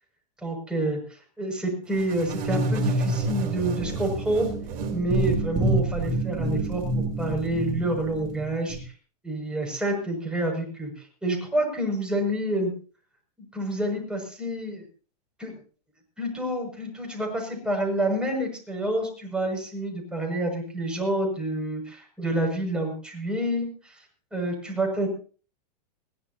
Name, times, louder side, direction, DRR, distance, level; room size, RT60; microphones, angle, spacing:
voice 1, 0.4-1.0 1.4-4.5 4.9-8.9 9.2-12.7 13.4-14.8 15.4-15.5 16.2-24.0 24.3-25.1, right 1 dB, 5° right, 0 dB, 6.8 m, -28 dB
sound 1, 2.0-8.8, right 2 dB, 40° right, 4.3 m, -27 dB
22.0 x 16.5 x 2.9 m, 0.40 s
hypercardioid pair, 120°, 21 cm